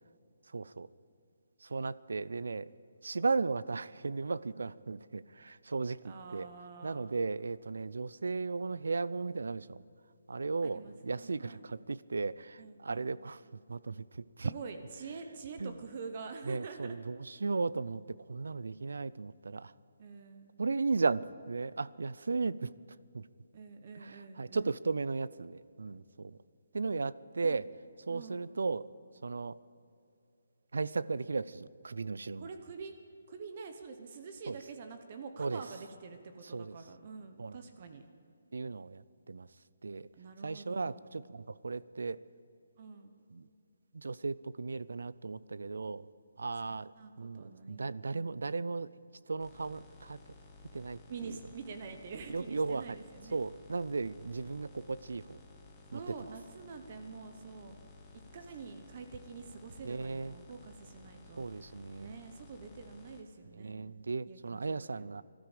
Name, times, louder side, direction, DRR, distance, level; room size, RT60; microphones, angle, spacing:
voice 1, 0.5-0.9 1.6-2.7 3.0-6.5 6.8-9.8 10.3-14.5 15.6-15.7 16.5-18.0 18.3-19.7 20.6-22.7 23.1-23.2 24.0-26.4 26.7-27.7 28.1-28.9 29.2-29.5 30.7-32.5 34.5-34.6 35.4-35.6 36.5-36.8 37.4-37.6 38.5-39.5 39.8-40.1 40.4-42.2 43.3-43.5 43.9-46.1 46.4-46.9 47.2-48.9 49.3-50.2 50.7-51.4 52.3-53.0 53.3-55.4 55.9-56.0 59.8-60.3 61.4-62.1 63.6-65.2, right 4 dB, 80° right, 18 dB, 0.4 m, -36 dB
voice 2, 6.0-7.1 10.6-11.6 12.6-13.1 14.4-17.0 20.0-20.6 23.5-24.7 27.4-27.6 28.1-28.6 32.4-32.9 33.3-38.1 40.2-41.1 42.8-43.1 46.7-48.5 51.1-53.4 55.9-57.7 58.1-61.5 62.0-64.0 64.3-65.2, right 5 dB, 30° right, 7 dB, 0.8 m, -47 dB
sound 1, 49.4-63.2, left 3 dB, 5° left, 0.9 m, -56 dB
20.5 x 12.5 x 5.0 m, 2.7 s
hypercardioid pair, 180°, 0 cm